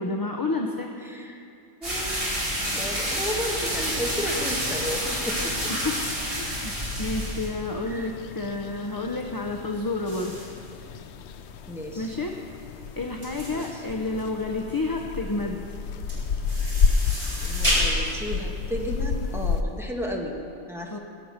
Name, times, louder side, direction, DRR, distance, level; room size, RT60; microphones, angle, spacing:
voice 1, 0.0-0.9 5.8-6.0 6.3-6.7 7.0-10.5 12.0-12.3 12.9-15.6 20.9-21.0, left 2 dB, 25° left, 2 dB, 0.6 m, -30 dB
voice 2, 0.9-1.4 1.8-2.2 2.7-5.7 7.8-8.1 11.7-12.2 13.5-13.6 17.4-20.4 20.7-21.0, equal, ahead, -1 dB, 1.5 m, -33 dB
sound 1, 1.8-7.5, equal, 55° right, 5.0 m, -29 dB
sound 2, 3.7-19.6, left 5 dB, 75° left, 0.9 m, -31 dB
sound 3, 10.1-19.7, equal, 30° right, 3.4 m, -33 dB
20.0 x 7.7 x 6.5 m, 2.5 s
omnidirectional pair, 1.2 m